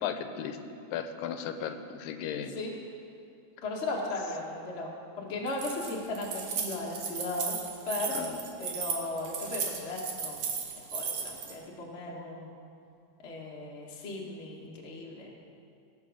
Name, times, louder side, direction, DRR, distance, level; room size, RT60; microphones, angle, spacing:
voice 1, 0.0-0.6 0.9-2.5 8.1-8.4, left 8 dB, 85° left, 8 dB, 2.4 m, -35 dB
voice 2, 3.6-7.6 7.8-8.1 8.6-10.5 10.9-12.5 13.2-15.3, left 2 dB, 35° left, -2 dB, 1.0 m, -36 dB
Keys jangling, 5.5-11.5, right 6 dB, 60° right, 2.0 m, -35 dB
18.0 x 6.1 x 6.4 m, 2.5 s
omnidirectional pair, 3.9 m